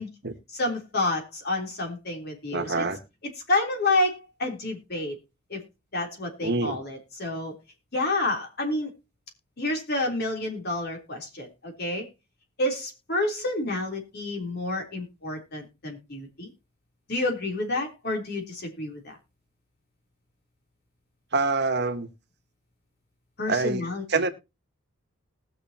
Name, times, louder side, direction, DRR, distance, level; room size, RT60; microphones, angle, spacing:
voice 1, 0.5-2.9 3.5-5.2 5.5-5.6 5.9-7.5 7.9-8.9 9.6-12.1 12.6-16.5 17.1-19.2 23.4-24.0, left 2 dB, 50° left, 3.4 m, -29 dB
voice 2, 2.5-3.0 6.4-6.9 21.3-22.1 23.5-24.3, right 3 dB, 55° right, 1.3 m, -26 dB
20.0 x 6.7 x 2.8 m
head